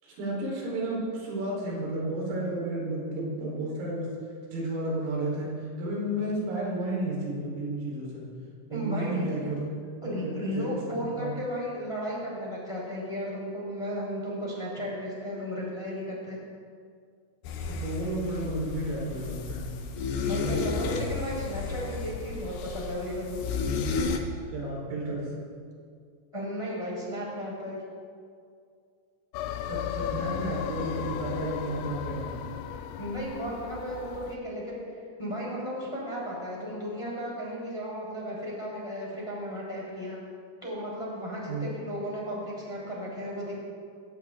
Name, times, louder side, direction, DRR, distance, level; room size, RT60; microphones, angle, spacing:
voice 1, 0.0-4.1 4.5-8.2 8.7-9.7 10.0-10.7 11.2-11.4 17.7-19.7 24.5-25.3 29.7-32.4 41.5-41.6, right 1 dB, 90° right, -4 dB, 7.3 m, -32 dB
voice 2, 8.7-9.3 10.0-16.4 20.2-23.4 26.3-27.8 33.0-40.2 40.6-43.6, equal, 5° left, -4 dB, 4.2 m, -34 dB
sound 1, 17.4-24.2, left 4 dB, 70° left, 3.1 m, -32 dB
sound 2, 29.3-34.4, left 9 dB, 85° left, 3.4 m, -35 dB
21.5 x 17.0 x 3.9 m, 2.2 s
omnidirectional pair, 5.9 m